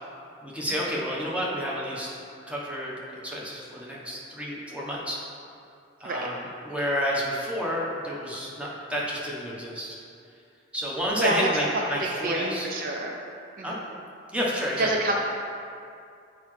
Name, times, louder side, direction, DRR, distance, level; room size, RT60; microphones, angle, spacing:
voice 1, 0.4-2.2 2.5-2.9 3.2-5.2 6.0-10.0 10.7-12.7 13.6-13.8 14.3-14.9, equal, 5° right, -5 dB, 1.0 m, -30 dB
voice 2, 11.2-13.2 13.6-13.8 14.8-15.1, right 2 dB, 45° right, 0 dB, 0.4 m, -28 dB
8.1 x 4.7 x 3.2 m, 2.5 s
head